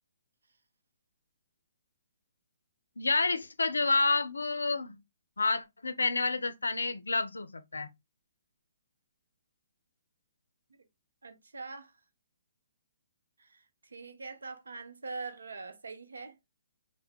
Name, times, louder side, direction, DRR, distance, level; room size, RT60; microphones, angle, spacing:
voice 1, 3.0-5.0 5.4-7.9, left 3 dB, 85° left, 0.4 m, -29 dB
voice 2, 11.2-11.9 13.4-16.4, right 4 dB, 80° right, 0.6 m, -43 dB
2.2 x 2.1 x 3.4 m
hypercardioid pair, 135°, 0 cm